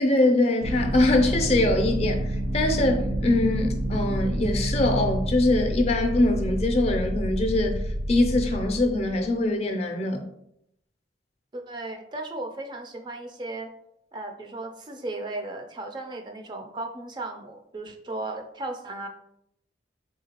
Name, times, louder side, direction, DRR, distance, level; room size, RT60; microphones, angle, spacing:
voice 1, 0.0-7.8 8.1-10.2, left 2 dB, 35° left, 4 dB, 0.4 m, -23 dB
sound 1, 0.6-9.3, right 1 dB, 85° right, 0.6 m, -29 dB
voice 2, 11.5-13.7 14.1-19.1, right 2 dB, 25° right, 4 dB, 0.3 m, -35 dB
3.7 x 3.1 x 2.8 m, 0.76 s
head